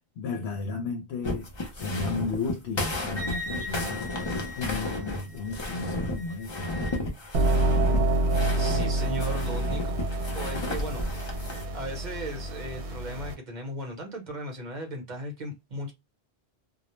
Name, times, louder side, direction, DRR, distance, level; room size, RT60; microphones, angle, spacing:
voice 1, 0.2-4.2 4.6-6.9, left 4 dB, 75° left, 0.8 m, -34 dB
sound 1, 1.2-11.6, left 1 dB, 35° left, 0.5 m, -33 dB
Wind instrument woodwind instrument, 3.2-7.0, left 2 dB, 10° right, 0.6 m, -40 dB
sound 2, 7.3-13.3, right 1 dB, 80° right, 0.9 m, -27 dB
voice 2, 8.6-9.8 10.3-11.0 11.7-15.9, equal, 45° right, 0.9 m, -37 dB
2.2 x 2.0 x 3.0 m
omnidirectional pair, 1.1 m